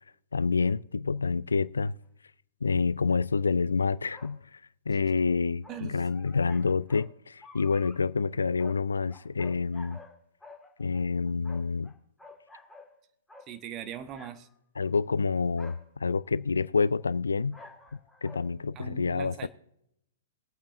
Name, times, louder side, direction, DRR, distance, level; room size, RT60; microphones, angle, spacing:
voice 1, 0.3-2.0 2.6-4.6 4.9-10.0 10.8-11.9 14.8-17.6 18.2-19.5, left 4 dB, 75° left, 0.3 m, -28 dB
sound 1, 2.0-2.1 4.1-4.3 5.6-7.1 7.4-8.0 8.6-8.8 9.1-10.1 10.4-11.9 12.2-12.9 13.3-13.5 14.1-14.3 14.9-15.0 15.6-15.9 17.5-18.5 18.8-18.9, left 3 dB, 5° left, 1.6 m, -51 dB
voice 2, 5.7-6.0 13.5-14.5 18.7-19.5, right 9 dB, 30° right, 1.1 m, -40 dB
21.5 x 8.7 x 2.6 m
figure-of-eight pair, 110°, 0 cm